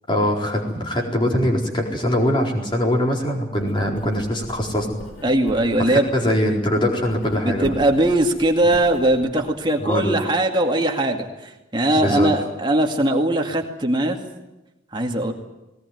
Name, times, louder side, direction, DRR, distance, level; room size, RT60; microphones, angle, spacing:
voice 1, 0.1-4.9 5.8-7.7 8.6-8.7 9.8-10.2 12.0-12.3, equal, 25° left, 0 dB, 4.3 m, -22 dB
Writing, 3.5-9.5, equal, 90° left, 4.9 m, -41 dB
voice 2, 5.2-6.1 7.5-14.2 14.9-15.3, right 1 dB, 25° right, 2 dB, 2.2 m, -20 dB
20.0 x 19.0 x 9.5 m, 0.99 s
head